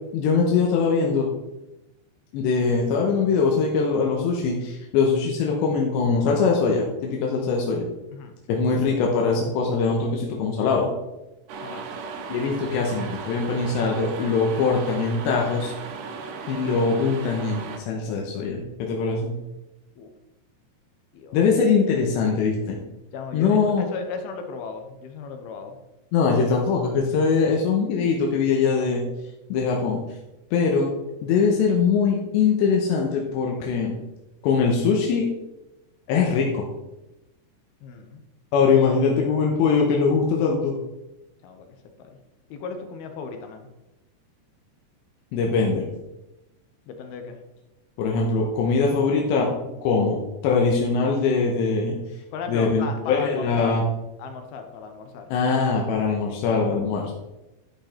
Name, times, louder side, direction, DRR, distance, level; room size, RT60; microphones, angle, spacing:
voice 1, 0.1-1.3 2.3-7.9 8.5-10.9 12.3-15.7 16.5-19.4 21.3-22.8 23.3-23.9 26.1-29.0 29.5-30.0 30.5-30.9 31.2-34.0 34.4-35.3 36.1-36.6 38.5-40.8 45.3-45.9 48.0-49.5 49.8-52.0 52.5-53.8 55.3-57.1, left 5 dB, 90° left, -1 dB, 3.3 m, -22 dB
sound 1, 11.5-17.8, right 5 dB, 70° right, 2.1 m, -36 dB
voice 2, 23.1-25.8 37.8-38.2 39.1-39.4 41.4-41.7 42.0-42.1 42.5-43.7 46.9-47.4 52.3-53.8 54.2-55.3, left 5 dB, 75° left, 6 dB, 2.6 m, -36 dB
11.5 x 5.5 x 4.3 m, 0.97 s
omnidirectional pair, 4.9 m